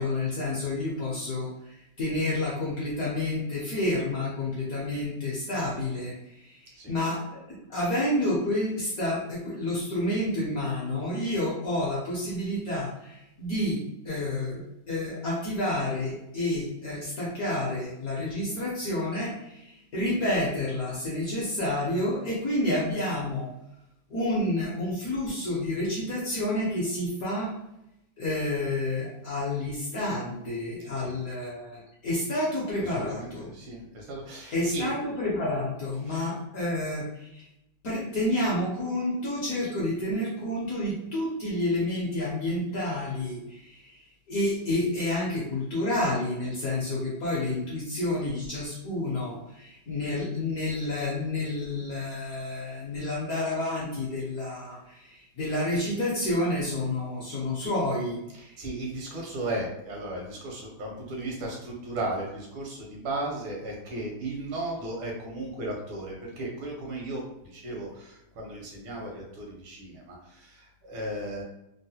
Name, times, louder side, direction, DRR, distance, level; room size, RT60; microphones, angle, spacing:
voice 1, 0.0-23.5 24.1-27.5 28.2-33.5 34.5-37.5 37.8-58.6, left 1 dB, 65° left, -5 dB, 0.9 m, -29 dB
voice 2, 32.8-34.9 35.9-36.3 58.3-71.4, right 2 dB, 80° right, -1 dB, 1.7 m, -36 dB
3.8 x 2.1 x 2.7 m, 0.85 s
omnidirectional pair, 2.2 m